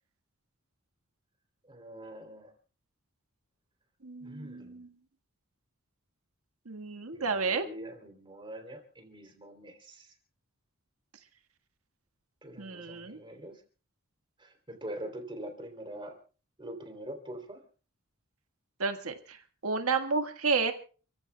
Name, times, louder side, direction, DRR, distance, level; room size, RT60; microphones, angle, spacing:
voice 1, 1.6-2.5 4.2-4.8 7.1-10.1 12.4-13.6 14.4-16.2 16.6-17.6, right 1 dB, 25° right, 4 dB, 3.3 m, -44 dB
voice 2, 4.0-4.9 6.6-7.6 12.6-13.2 18.8-19.4 19.6-20.7, right 4 dB, 80° right, 6 dB, 1.7 m, -31 dB
30.0 x 15.5 x 2.3 m, 0.38 s
head